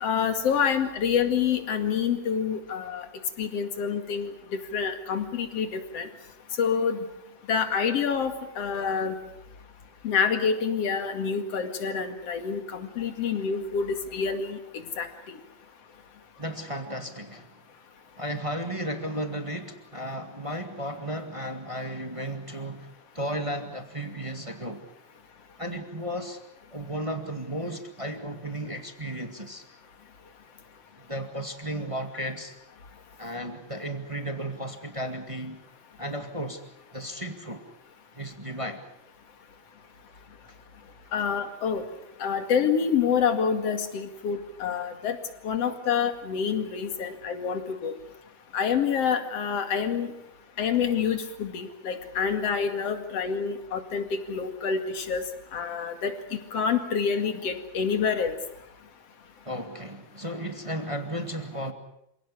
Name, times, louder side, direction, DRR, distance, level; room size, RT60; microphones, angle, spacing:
voice 1, 0.0-3.1 3.4-6.1 6.6-7.0 7.5-9.2 10.0-14.6 15.0-15.1 41.1-41.8 42.2-45.2 45.4-47.9 48.5-50.1 50.6-55.2 55.5-56.2 56.5-58.4, left 6 dB, 55° left, 7 dB, 3.1 m, -27 dB
voice 2, 16.4-17.5 18.2-22.9 23.1-24.9 25.6-26.4 26.7-29.6 31.1-32.6 33.2-35.6 36.0-36.6 36.9-37.7 38.1-38.8 59.4-61.7, right 1 dB, 15° right, 6 dB, 1.5 m, -34 dB
28.0 x 17.5 x 8.5 m, 0.84 s
omnidirectional pair, 3.5 m